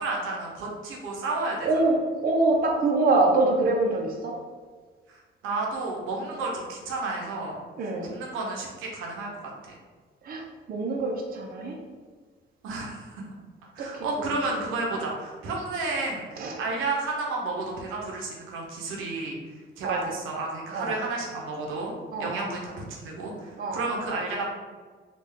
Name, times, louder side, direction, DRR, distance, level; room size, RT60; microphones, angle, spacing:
voice 1, 0.0-1.7 5.1-9.3 9.6-9.8 12.6-13.2 13.7-19.4 19.8-21.9 22.2-24.5, right 3 dB, 90° right, -1 dB, 0.7 m, -32 dB
voice 2, 1.6-1.9 2.2-4.3 7.8-8.1 10.2-10.4 10.7-11.8 13.8-14.0 16.4-16.5 19.8-20.1 20.7-20.9 22.1-22.5 23.6-23.8, right 2 dB, 50° right, 0 dB, 0.6 m, -24 dB
3.3 x 2.4 x 3.5 m, 1.5 s
cardioid pair, 90°, 20 cm